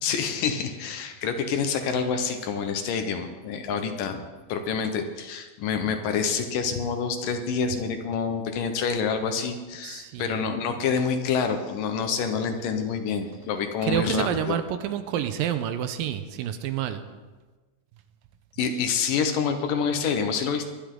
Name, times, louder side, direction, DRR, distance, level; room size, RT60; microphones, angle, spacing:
voice 1, 0.0-14.6 18.6-20.7, left 6 dB, 70° left, 6 dB, 2.5 m, -27 dB
voice 2, 9.8-10.4 13.8-17.0, right 10 dB, 80° right, 9 dB, 2.4 m, -28 dB
22.0 x 10.5 x 3.8 m, 1.3 s
omnidirectional pair, 4.2 m